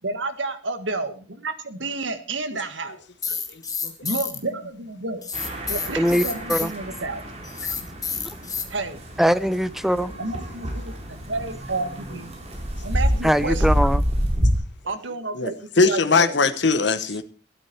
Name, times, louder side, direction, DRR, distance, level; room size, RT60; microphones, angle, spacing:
voice 1, 0.0-3.0 4.0-5.2 5.7-7.2 8.7-9.0 10.2-12.3 12.8-13.6 14.8-16.4, right 3 dB, 85° right, 1.7 m, -30 dB
sound 1, 3.2-4.4 5.2-6.7 7.4-8.7, left 6 dB, 20° left, 1.7 m, -29 dB
sound 2, 5.3-14.5, equal, 35° right, 3.9 m, -27 dB
voice 2, 9.2-10.1 13.2-14.0, equal, ahead, 0.5 m, -21 dB
voice 3, 15.3-17.2, left 4 dB, 65° left, 1.0 m, -20 dB
12.5 x 12.5 x 4.5 m
head